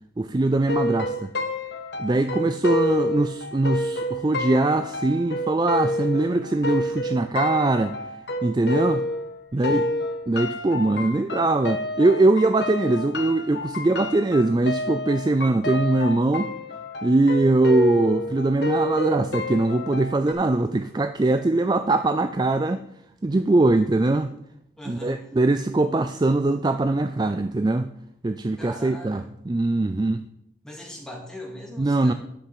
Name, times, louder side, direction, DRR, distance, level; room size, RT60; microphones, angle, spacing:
voice 1, 0.2-1.3 2.0-7.9 8.4-9.0 9.5-9.8 10.3-16.5 17.0-22.8 23.2-24.3 24.9-27.9 28.2-30.2 31.8-32.1, right 2 dB, 20° right, 9 dB, 0.3 m, -22 dB
sound 1, 0.7-9.3 9.6-20.3, left 2 dB, 65° left, 1.2 m, -29 dB
voice 2, 2.1-2.5 9.5-9.9 24.8-25.3 28.6-29.3 30.6-32.1, equal, 5° left, -1 dB, 2.2 m, -40 dB
10.0 x 5.6 x 7.8 m, 0.78 s
head